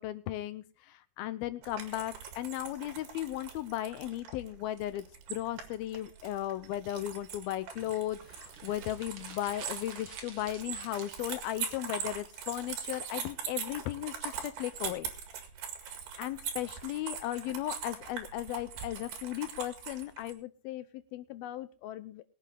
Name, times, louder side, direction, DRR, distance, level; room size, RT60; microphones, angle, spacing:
voice 1, 0.0-15.1 16.2-22.2, left 13 dB, 75° left, 13 dB, 2.6 m, -36 dB
sound 1, 1.6-20.3, right 7 dB, 80° right, 3.9 m, -42 dB
sound 2, 7.7-11.7, right 5 dB, 60° right, 1.3 m, -50 dB
21.5 x 8.5 x 3.8 m, 0.33 s
omnidirectional pair, 4.6 m